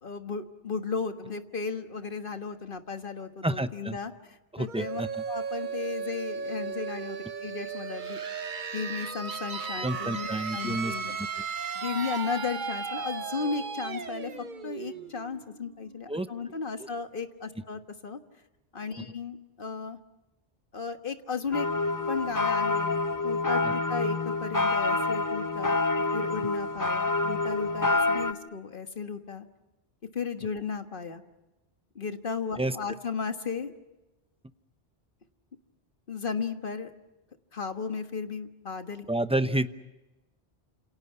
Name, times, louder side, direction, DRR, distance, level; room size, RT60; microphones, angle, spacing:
voice 1, 0.0-4.1 4.6-5.0 5.3-8.2 8.7-11.2 11.7-14.3 14.6-18.2 18.7-20.0 20.7-21.7 22.1-23.0 23.2-25.8 26.1-29.5 30.1-31.2 31.9-33.7 36.1-36.9 37.5-39.1, left 5 dB, 50° left, 8 dB, 1.6 m, -35 dB
voice 2, 3.4-4.0 4.5-5.2 9.8-10.9 11.4-11.5 16.1-16.3 23.6-23.7 32.6-32.8 39.1-39.7, right 1 dB, 5° right, 11 dB, 0.7 m, -29 dB
sound 1, 4.7-16.2, right 5 dB, 45° right, 1.2 m, -36 dB
sound 2, 21.5-28.3, left 3 dB, 20° left, 1.0 m, -27 dB
29.5 x 27.5 x 5.7 m, 1.0 s
omnidirectional pair, 1.2 m